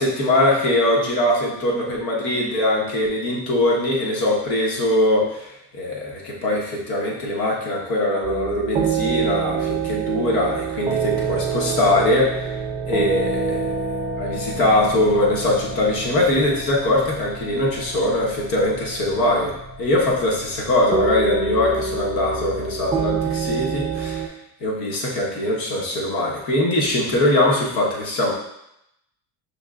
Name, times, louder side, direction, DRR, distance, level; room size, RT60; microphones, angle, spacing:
voice 1, 0.0-12.6 12.9-13.8 14.2-19.5 19.8-24.3 24.6-28.3, left 1 dB, 85° left, -4 dB, 1.4 m, -21 dB
sound 1, 8.2-24.3, right 5 dB, 15° right, 0.4 m, -27 dB
5.4 x 3.1 x 2.5 m, 0.81 s
cardioid pair, 120°, 37 cm